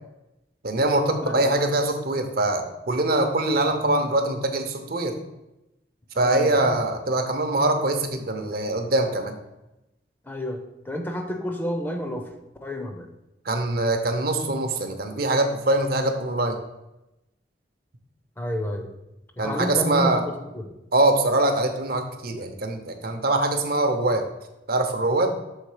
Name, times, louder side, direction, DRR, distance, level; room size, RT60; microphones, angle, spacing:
voice 1, 0.6-5.1 6.2-9.3 13.5-16.6 19.4-20.2 20.9-24.2 24.7-25.3, right 2 dB, 55° right, 6 dB, 0.7 m, -23 dB
voice 2, 1.2-1.5 6.1-6.8 10.3-10.6 10.9-12.3 12.6-13.1 18.4-18.9 19.4-20.7, equal, 10° left, 4 dB, 0.6 m, -30 dB
6.5 x 3.7 x 4.8 m, 0.94 s
head